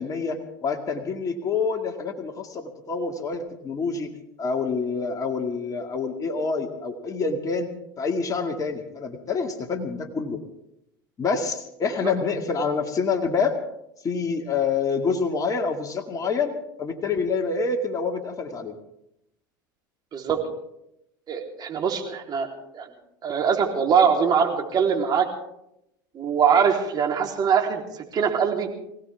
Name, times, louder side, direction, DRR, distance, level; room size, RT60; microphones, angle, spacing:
voice 1, 0.0-4.1 4.4-7.7 8.0-10.4 11.2-13.6 14.0-16.5 16.8-18.8, left 5 dB, 30° left, 4 dB, 2.2 m, -27 dB
voice 2, 21.3-22.5 22.7-22.9 23.2-25.3 26.1-27.8 28.1-28.7, right 7 dB, 35° right, 2 dB, 3.6 m, -22 dB
24.0 x 16.5 x 3.5 m, 0.81 s
hypercardioid pair, 85°, 11 cm